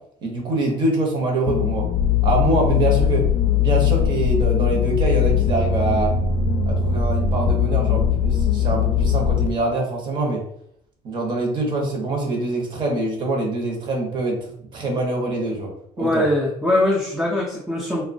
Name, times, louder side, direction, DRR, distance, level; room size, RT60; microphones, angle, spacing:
voice 1, 0.2-1.9 2.2-3.3 3.6-6.1 6.7-10.4 11.0-16.2, right 2 dB, 40° right, 1 dB, 0.7 m, -24 dB
sound 1, 1.5-9.5, left 7 dB, 65° left, 0.4 m, -20 dB
voice 2, 16.0-18.1, left 1 dB, 5° right, -3 dB, 0.3 m, -21 dB
3.0 x 2.1 x 2.5 m, 0.71 s
cardioid pair, 165°, 13 cm